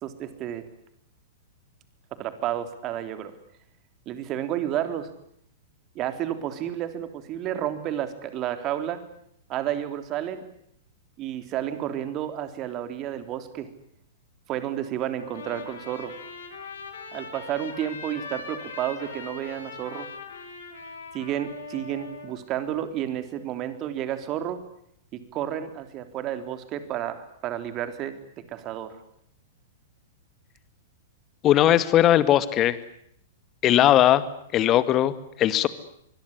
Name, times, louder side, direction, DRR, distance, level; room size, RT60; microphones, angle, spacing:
voice 1, 0.0-0.6 2.2-3.3 4.0-5.1 5.9-9.0 9.5-10.5 11.2-13.7 14.5-16.1 17.1-20.1 21.1-24.6 25.1-28.2 28.5-28.9, right 11 dB, 35° right, 10 dB, 3.5 m, -31 dB
Trumpet, 15.2-22.3, left 4 dB, 70° left, 6.7 m, -40 dB
voice 2, 31.4-32.8 33.6-34.2 34.5-35.7, left 12 dB, 30° left, 14 dB, 2.1 m, -19 dB
25.0 x 22.0 x 9.7 m, 0.70 s
figure-of-eight pair, 105°, 0 cm